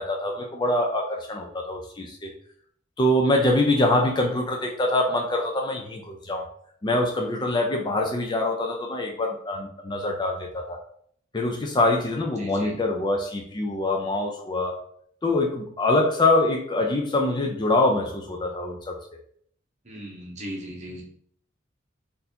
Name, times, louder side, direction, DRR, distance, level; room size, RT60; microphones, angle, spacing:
voice 1, 0.0-2.3 3.0-6.5 6.8-10.8 11.3-14.8 15.2-19.0, left 2 dB, 25° left, 2 dB, 0.4 m, -24 dB
voice 2, 12.4-12.8 19.8-21.0, equal, 35° right, -2 dB, 1.0 m, -37 dB
4.0 x 2.6 x 2.8 m, 0.63 s
head